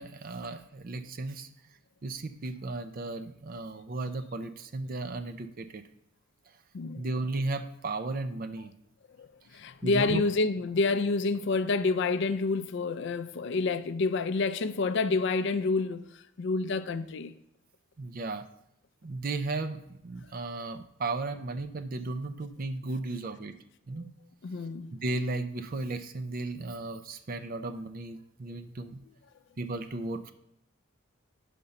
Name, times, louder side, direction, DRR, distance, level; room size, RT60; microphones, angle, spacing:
voice 1, 0.0-1.5 2.0-5.8 7.0-8.7 9.8-10.2 18.0-18.4 19.0-23.6 23.9-24.1 24.9-29.0 29.6-30.3, right 2 dB, 45° right, 0.5 m, -35 dB
voice 2, 9.5-16.0 16.4-17.3 24.4-24.9, left 3 dB, 60° left, 0.4 m, -28 dB
5.4 x 5.0 x 5.7 m
head